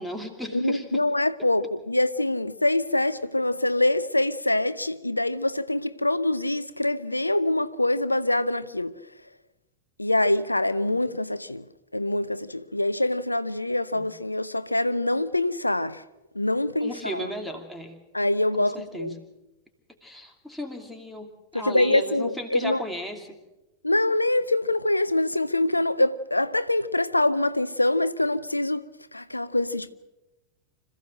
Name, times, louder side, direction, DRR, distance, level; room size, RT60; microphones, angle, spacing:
voice 1, 0.0-1.1 1.4-1.5 13.9-14.1 16.8-18.0 18.6-19.2 20.0-23.4, equal, ahead, 2.7 m, -36 dB
voice 2, 0.5-8.9 10.0-11.6 11.9-16.0 16.4-17.3 18.1-19.1 21.5-22.8 23.8-28.8 29.1-29.9, left 1 dB, 85° left, 0.6 m, -24 dB
26.0 x 15.5 x 6.5 m
figure-of-eight pair, 90°, 0 cm